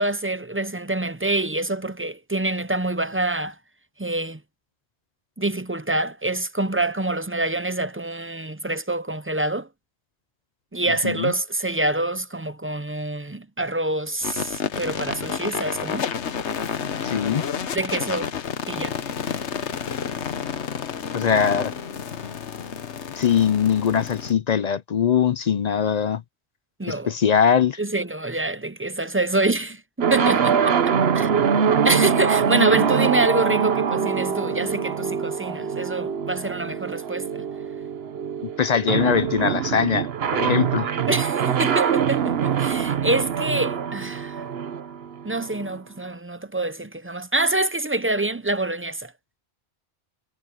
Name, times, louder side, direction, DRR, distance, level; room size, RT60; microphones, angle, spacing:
voice 1, 0.0-3.5 4.0-4.4 5.4-9.7 10.7-16.1 17.7-18.3 18.7-19.0 26.8-27.1 27.8-30.8 31.1-31.3 31.8-37.3 41.1-44.3 45.2-49.1, right 2 dB, 15° right, 0.5 m, -26 dB
sound 1, 14.2-24.3, left 7 dB, 75° left, 1.3 m, -30 dB
voice 2, 17.0-17.4 21.1-21.7 23.1-26.2 26.9-27.8 38.6-41.0, left 7 dB, 55° left, 0.5 m, -21 dB
sound 2, 30.0-45.8, right 7 dB, 60° right, 1.1 m, -24 dB
omnidirectional pair, 1.2 m